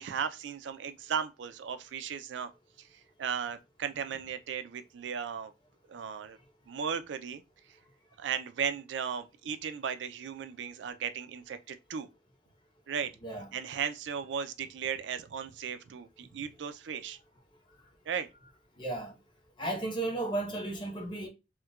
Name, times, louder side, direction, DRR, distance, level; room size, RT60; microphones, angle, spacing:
voice 1, 0.0-2.5 2.8-2.9 3.2-5.5 5.9-6.4 6.7-7.4 8.2-12.1 12.9-13.1 13.5-17.2 18.1-18.3, right 7 dB, 80° right, 0.4 m, -36 dB
voice 2, 18.8-19.1 19.6-21.3, right 2 dB, 25° left, 0.9 m, -34 dB
4.3 x 2.2 x 2.3 m
head